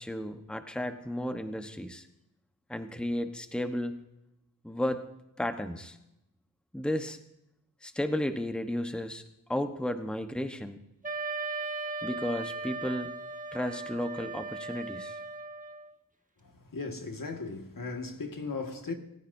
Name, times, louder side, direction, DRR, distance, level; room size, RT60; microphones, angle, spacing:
voice 1, 0.0-2.1 2.7-4.0 4.6-5.1 5.4-6.0 6.7-7.2 7.8-9.2 9.5-10.8 12.0-13.1 13.5-15.2, left 1 dB, 5° left, 1.1 m, -33 dB
Wind instrument woodwind instrument, 11.0-15.9, right 3 dB, 20° right, 1.3 m, -37 dB
voice 2, 16.4-18.9, left 3 dB, 70° left, 2.0 m, -37 dB
27.5 x 15.0 x 2.7 m
wide cardioid pair, 80°, 34 cm